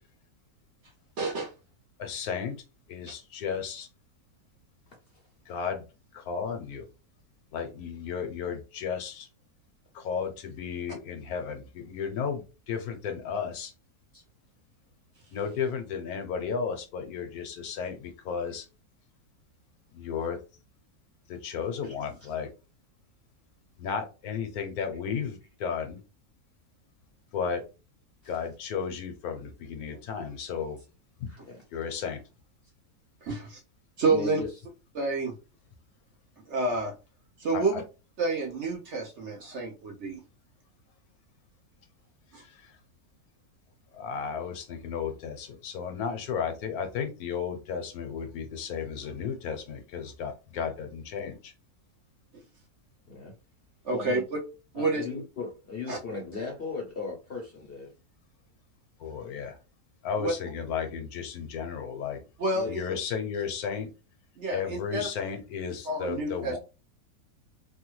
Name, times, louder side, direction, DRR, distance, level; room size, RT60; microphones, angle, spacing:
voice 1, 1.2-1.5 33.2-33.6 34.0-34.4 34.9-35.3 36.5-36.9 37.4-37.8 38.2-40.2 42.3-42.4 53.8-54.2 54.7-55.0 55.9-56.0 60.2-60.3 62.4-62.8 64.4-65.1 65.8-66.6, right 3 dB, 55° right, 0 dB, 0.9 m, -29 dB
voice 2, 2.0-2.6 2.9-3.9 5.5-5.8 6.1-6.8 7.5-9.3 9.9-13.7 15.3-18.6 19.9-20.4 21.3-22.5 23.8-26.0 27.3-27.6 28.3-30.8 31.7-32.2 37.5-37.8 43.9-51.5 59.0-59.6 60.0-62.2 62.7-63.9 64.5-66.6, left 6 dB, 75° left, 6 dB, 1.1 m, -34 dB
voice 3, 31.3-31.6 34.1-34.5 53.1-53.4 53.9-54.2 54.7-57.9 62.5-63.0 63.3-63.4, left 4 dB, 55° left, 0 dB, 0.7 m, -38 dB
3.3 x 2.2 x 3.0 m, 0.31 s
omnidirectional pair, 1.7 m